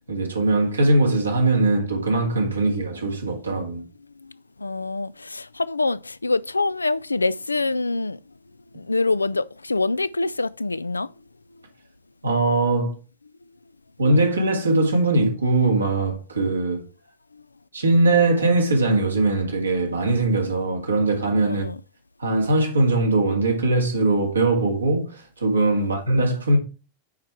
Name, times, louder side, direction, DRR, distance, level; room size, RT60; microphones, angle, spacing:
voice 1, 0.1-3.8 12.2-13.0 14.0-16.8 17.7-21.7 22.2-26.6, right 2 dB, 80° right, 1.9 m, -21 dB
voice 2, 4.6-8.2 8.8-11.1 21.5-21.8 25.8-25.9, left 3 dB, 80° left, 0.3 m, -25 dB
9.4 x 4.7 x 4.5 m
figure-of-eight pair, 90°, 0 cm